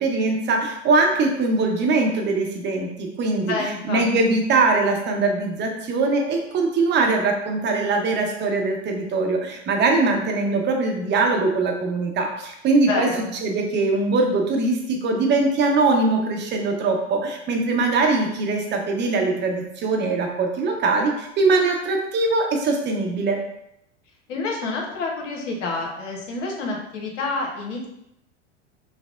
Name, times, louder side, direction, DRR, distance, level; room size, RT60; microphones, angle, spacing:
voice 1, 0.0-3.5 3.9-13.1 13.4-23.4, right 3 dB, 30° right, 2 dB, 0.7 m, -22 dB
voice 2, 3.5-4.0 12.9-13.3 24.3-27.9, left 3 dB, 80° left, 0 dB, 0.9 m, -28 dB
5.5 x 2.0 x 2.4 m, 0.82 s
hypercardioid pair, 100°, 36 cm